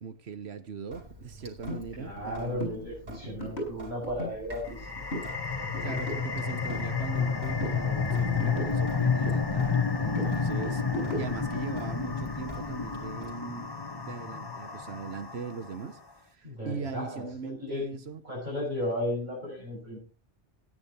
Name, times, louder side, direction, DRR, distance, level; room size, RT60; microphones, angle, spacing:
voice 1, 0.0-2.6 5.8-9.7 10.0-10.8 11.1-16.0 16.3-18.2, right 5 dB, 75° right, 1.3 m, -40 dB
Sink (filling or washing) / Drip, 0.9-13.3, left 1 dB, 90° right, 3.2 m, -47 dB
sound 1, 1.7-1.8 2.2-2.3 2.6-2.8 3.1-4.3 4.7-5.3 5.6-7.3 7.6-9.4 9.7-11.5, equal, 70° left, 5.6 m, -37 dB
voice 2, 2.0-4.9 16.4-17.9 18.2-20.0, left 1 dB, 45° right, 6.1 m, -34 dB
sound 2, 4.6-15.8, left 5 dB, 20° left, 1.0 m, -30 dB
14.0 x 10.0 x 4.2 m
omnidirectional pair, 1.1 m